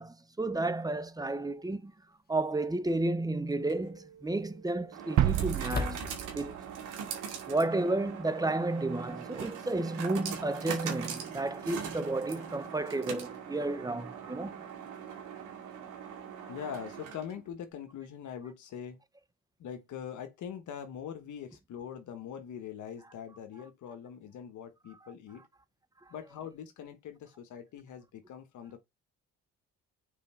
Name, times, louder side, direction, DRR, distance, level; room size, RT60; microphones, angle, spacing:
voice 1, 0.0-1.9 2.3-6.6 7.5-14.7 16.4-16.5, right 2 dB, 10° right, 0.9 m, -32 dB
sound 1, 1.0-1.1 2.9-3.3 3.7-3.8 5.6-6.5, left 5 dB, 30° left, 0.9 m, -37 dB
sound 2, 3.5-17.5, right 7 dB, 85° right, 2.2 m, -42 dB
sound 3, 5.2-7.2, right 12 dB, 70° right, 0.6 m, -30 dB
voice 2, 16.5-19.0 19.6-25.5 26.1-28.8, left 8 dB, 75° left, 1.2 m, -43 dB
6.8 x 4.4 x 4.4 m
cardioid pair, 90°, 30 cm